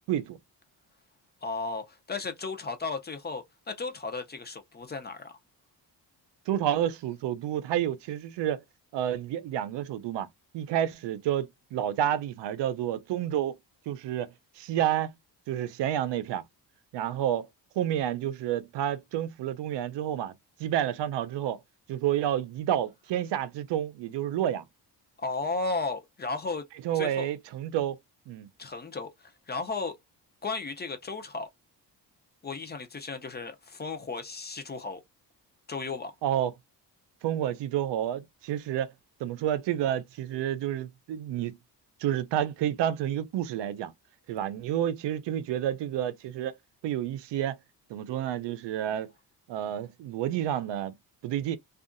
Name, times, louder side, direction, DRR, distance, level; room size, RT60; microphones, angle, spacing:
voice 1, 1.4-5.3 25.2-26.7 26.9-27.3 28.6-30.0 30.4-31.5 32.4-35.0 35.7-36.1, left 3 dB, 25° left, 0.4 m, -34 dB
voice 2, 6.5-8.6 8.9-10.3 10.5-13.6 13.9-15.1 15.5-16.4 16.9-17.5 17.8-20.3 20.6-21.6 21.9-24.6 26.8-28.0 28.3-28.5 36.2-36.5 37.2-38.9 39.2-41.6 42.0-43.9 44.3-46.5 46.8-47.6 47.9-49.1 49.5-50.9 51.2-51.6, right 11 dB, 75° right, 0.6 m, -29 dB
2.6 x 2.4 x 2.4 m
cardioid pair, 105°, 42 cm